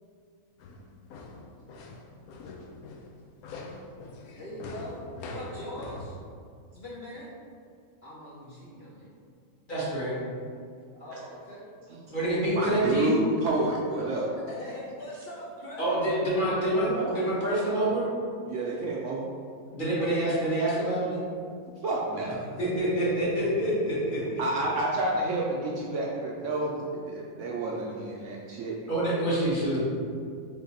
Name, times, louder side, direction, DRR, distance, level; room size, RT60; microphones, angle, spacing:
Wooden Stair., 0.6-6.1, left 2 dB, 80° left, 1.0 m, -43 dB
voice 1, 4.2-6.2 6.7-7.3 8.0-9.1 11.0-11.7 14.3-15.9 16.9-17.3 17.5-17.9, left 1 dB, 55° left, -7 dB, 0.8 m, -41 dB
voice 2, 9.7-10.2 12.1-13.1 15.8-18.0 19.7-21.2 22.6-24.4 28.9-29.8, right 1 dB, 40° left, -8 dB, 1.1 m, -27 dB
voice 3, 12.6-14.3 16.7-17.1 18.5-19.3 21.8-22.4 24.4-28.8, right 2 dB, 70° right, -3 dB, 0.8 m, -29 dB
3.7 x 2.9 x 4.1 m, 2.3 s
omnidirectional pair, 1.6 m